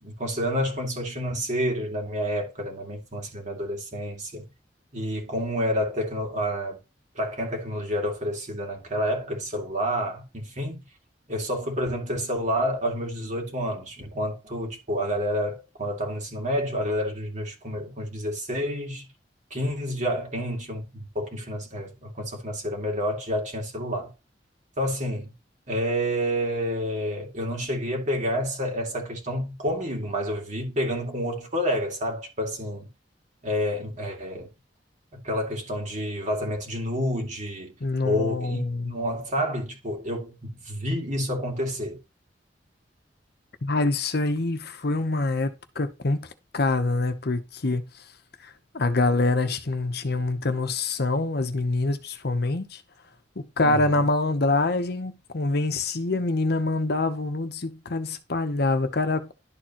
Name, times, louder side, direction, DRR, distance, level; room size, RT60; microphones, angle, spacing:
voice 1, 0.0-4.5 4.9-6.8 7.1-10.8 11.3-19.1 19.5-24.1 24.8-25.3 25.7-32.9 33.4-34.5 35.1-37.7 38.0-42.0 53.6-54.1, equal, 45° right, 2.5 m, -29 dB
voice 2, 37.8-38.9 43.6-45.5 45.8-46.3 46.5-47.9 48.4-52.8 53.4-59.3, left 2 dB, 60° left, 0.9 m, -25 dB
11.5 x 4.4 x 3.0 m
head